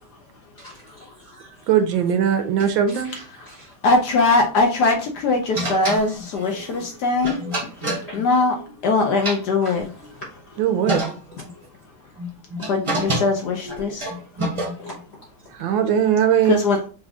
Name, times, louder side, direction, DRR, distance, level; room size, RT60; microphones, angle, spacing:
voice 1, 0.6-1.5 3.0-3.7 7.2-7.3 7.6-8.2 9.6-9.9 10.2-10.3 14.8-14.9, left 2 dB, 50° left, 0.8 m, -40 dB
voice 2, 1.7-3.1 10.6-11.0 15.5-16.7, right 9 dB, 75° right, 1.2 m, -19 dB
voice 3, 3.8-7.4 8.1-8.6 8.8-9.9 12.6-14.1 16.5-16.8, left 3 dB, 65° left, 1.1 m, -20 dB
sound 1, 5.5-8.8 9.1-10.1 10.6-10.7 10.9-11.5 12.2-15.0, right 1 dB, 25° right, 0.7 m, -28 dB
4.8 x 2.5 x 3.5 m
omnidirectional pair, 2.2 m